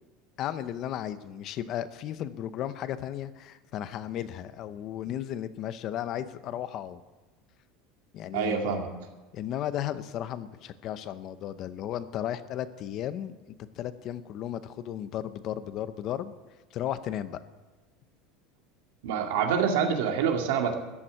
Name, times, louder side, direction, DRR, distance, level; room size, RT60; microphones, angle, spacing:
voice 1, 0.4-7.0 8.1-8.8 9.3-13.4 13.8-16.3 16.7-17.4, left 11 dB, 35° left, 13 dB, 0.7 m, -34 dB
voice 2, 8.3-8.9 19.0-20.8, right 7 dB, 85° right, 3 dB, 2.3 m, -26 dB
14.0 x 7.3 x 9.9 m, 1.2 s
cardioid pair, 175°, 0 cm